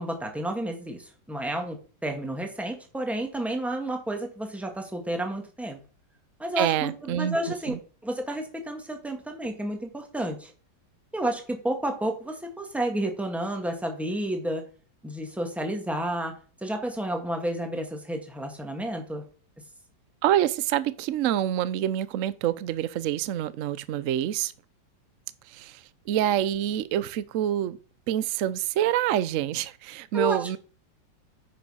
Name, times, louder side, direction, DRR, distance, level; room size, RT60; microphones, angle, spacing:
voice 1, 0.0-5.8 6.4-7.8 8.0-10.5 11.1-14.7 15.0-19.2 30.1-30.6, right 1 dB, ahead, 1.5 m, -31 dB
voice 2, 6.6-7.8 20.2-24.5 25.5-27.8 28.1-30.6, right 11 dB, 70° right, 0.7 m, -27 dB
9.7 x 5.9 x 5.5 m
omnidirectional pair, 2.0 m